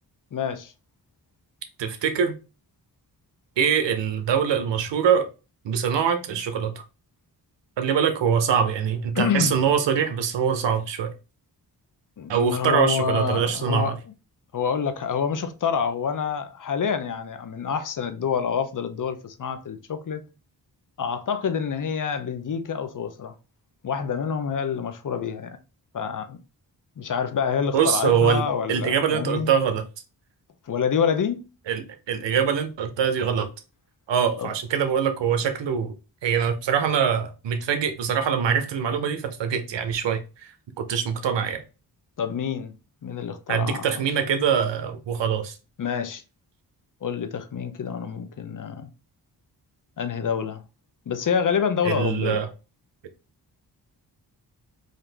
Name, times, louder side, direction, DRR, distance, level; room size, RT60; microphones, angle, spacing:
voice 1, 0.3-0.7 9.1-9.5 12.2-14.0 14.5-20.2 21.0-23.3 23.8-25.6 25.9-26.4 27.0-29.5 30.6-31.4 34.4-34.5 42.2-42.7 43.0-44.0 45.8-46.2 47.0-48.9 50.0-50.6 51.1-52.5, left 7 dB, 50° left, 0.7 m, -27 dB
voice 2, 1.8-2.4 3.6-5.3 5.6-6.7 7.8-11.1 12.3-13.9 27.7-28.4 28.7-29.8 31.7-33.5 34.1-35.9 36.2-40.5 40.8-41.6 43.5-45.6 51.8-52.5, right 7 dB, 85° right, 0.8 m, -23 dB
3.8 x 2.8 x 3.3 m
cardioid pair, 55°, 42 cm